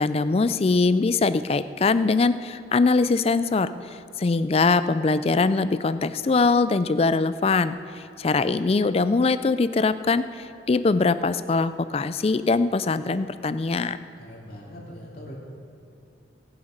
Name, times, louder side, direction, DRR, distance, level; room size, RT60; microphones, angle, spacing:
voice 1, 0.0-3.7 4.2-14.0, left 3 dB, 30° left, 13 dB, 0.3 m, -22 dB
voice 2, 14.2-15.3, equal, 50° left, -4 dB, 2.9 m, -41 dB
19.5 x 7.1 x 5.2 m, 2.6 s
head